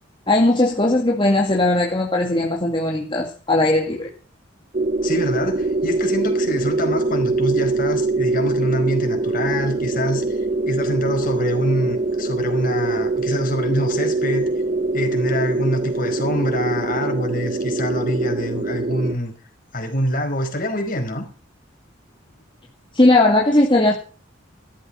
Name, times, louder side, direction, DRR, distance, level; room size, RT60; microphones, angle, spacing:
voice 1, 0.3-4.1 22.9-23.9, left 2 dB, 25° left, 2.1 m, -18 dB
sound 1, 4.7-19.2, right 2 dB, 40° right, 0.8 m, -23 dB
voice 2, 5.0-10.4 10.7-14.5 14.9-19.3 19.7-21.3, equal, 45° left, 4.8 m, -25 dB
16.0 x 13.5 x 5.8 m
head